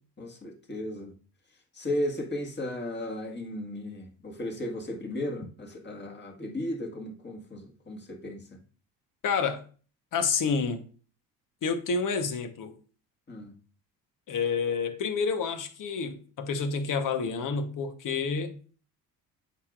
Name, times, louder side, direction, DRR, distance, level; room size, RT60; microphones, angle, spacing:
voice 1, 0.2-1.1 1.8-8.4 13.3-13.5, left 1 dB, 25° left, 1.7 m, -35 dB
voice 2, 9.2-9.6 10.1-10.8 11.6-12.7 14.3-18.5, left 5 dB, 55° left, 1.2 m, -29 dB
8.1 x 4.9 x 2.5 m
supercardioid pair, 75°, 39 cm